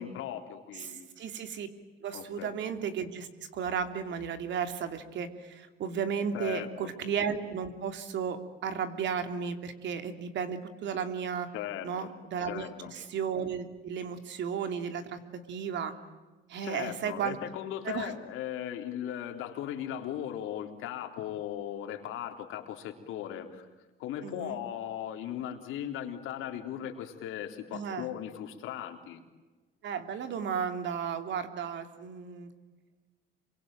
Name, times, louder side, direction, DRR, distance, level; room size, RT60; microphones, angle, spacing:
voice 1, 0.0-1.1 2.1-2.5 6.3-6.9 11.5-12.1 12.5-12.9 16.6-23.7 24.0-29.2, left 10 dB, 80° left, 5 dB, 3.6 m, -38 dB
voice 2, 0.8-1.7 2.0-11.5 11.8-15.9 16.5-17.4 17.8-18.1 24.2-24.6 27.7-28.1 29.8-32.5, right 7 dB, 65° right, 8 dB, 3.0 m, -34 dB
27.5 x 24.0 x 9.2 m, 1.3 s
cardioid pair, 120°, 21 cm